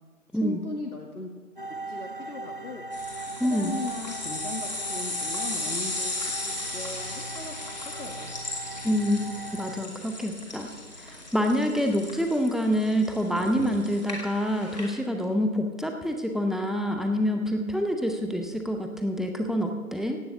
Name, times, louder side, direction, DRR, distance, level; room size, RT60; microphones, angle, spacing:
voice 1, 0.4-1.3 1.9-2.8 3.5-8.3, left 3 dB, 80° left, 1 dB, 2.2 m, -38 dB
sound 1, 1.6-9.9, right 2 dB, 35° right, 0.7 m, -39 dB
sound 2, 2.9-14.9, left 2 dB, 30° left, 2.5 m, -36 dB
voice 2, 3.4-3.7 8.8-9.2 9.5-10.7 11.0-20.2, equal, ahead, 4 dB, 0.6 m, -27 dB
16.5 x 6.7 x 8.3 m, 1.3 s
figure-of-eight pair, 170°, 44 cm